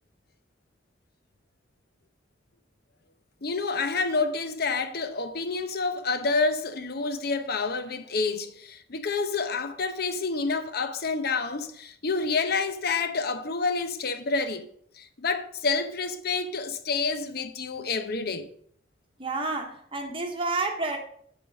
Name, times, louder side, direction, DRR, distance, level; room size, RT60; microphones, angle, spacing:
voice 1, 3.4-14.7 15.0-18.5, left 4 dB, 55° left, 0.8 m, -28 dB
voice 2, 19.2-21.0, right 3 dB, 30° right, 1.1 m, -30 dB
9.1 x 5.1 x 5.2 m
head